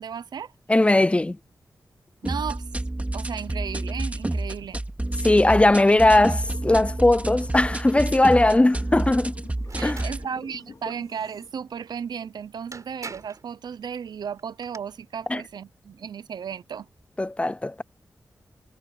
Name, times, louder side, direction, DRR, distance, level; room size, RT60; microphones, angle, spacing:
voice 1, 0.0-0.5 2.2-2.7 3.1-4.8 9.8-16.9, right 7 dB, 90° right, 0.7 m, -34 dB
voice 2, 0.7-1.4 5.2-9.4 9.8-10.0 15.3-15.4 17.2-17.8, left 2 dB, 15° left, 0.5 m, -19 dB
sound 1, 2.2-10.2, right 1 dB, 20° right, 2.2 m, -29 dB
sound 2, 6.3-11.5, left 4 dB, 55° left, 3.6 m, -45 dB
sound 3, 9.7-10.2 12.2-12.3 12.7-13.5 14.4-14.8, right 4 dB, 50° right, 5.2 m, -41 dB
cardioid pair, 65°, 7 cm